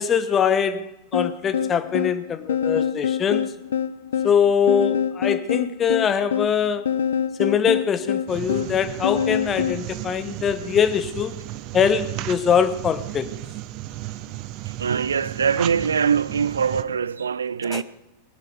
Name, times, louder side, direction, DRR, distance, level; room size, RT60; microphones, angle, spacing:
voice 1, 0.0-3.4 4.2-6.9 7.4-11.3 11.7-13.3 17.7-17.8, left 7 dB, 25° left, 1.0 m, -22 dB
sound 1, 1.1-9.8, left 8 dB, 65° left, 0.4 m, -25 dB
sound 2, 8.3-16.8, right 15 dB, 40° right, 0.8 m, -34 dB
voice 2, 14.8-17.8, right 6 dB, 70° right, 0.4 m, -23 dB
20.0 x 11.5 x 4.8 m
figure-of-eight pair, 90°, 0 cm